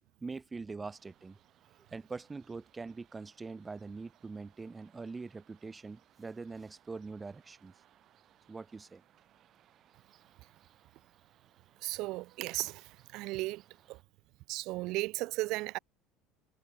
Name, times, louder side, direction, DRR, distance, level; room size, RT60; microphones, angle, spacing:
voice 1, 0.2-1.4 1.9-7.7 8.5-9.0, right 4 dB, 15° right, 0.7 m, -43 dB
sound 1, 0.8-14.0, right 11 dB, 45° right, 3.1 m, -67 dB
voice 2, 11.8-13.6 13.9-14.0 14.5-15.8, right 20 dB, 65° right, 0.4 m, -35 dB
supercardioid pair, 120°, 0 cm